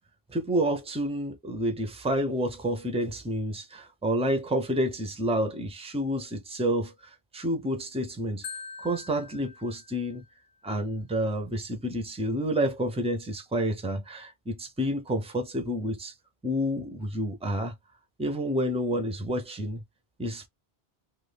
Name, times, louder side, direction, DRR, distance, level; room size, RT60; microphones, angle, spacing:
voice 1, 0.3-6.9 7.3-8.4 8.8-10.2 10.6-16.1 16.4-17.7 18.2-19.8 20.2-20.5, equal, 10° right, 0.5 m, -29 dB
Marimba xylophone, 8.4-10.5, left 5 dB, 60° left, 0.7 m, -44 dB
2.5 x 2.5 x 3.4 m
omnidirectional pair, 1.1 m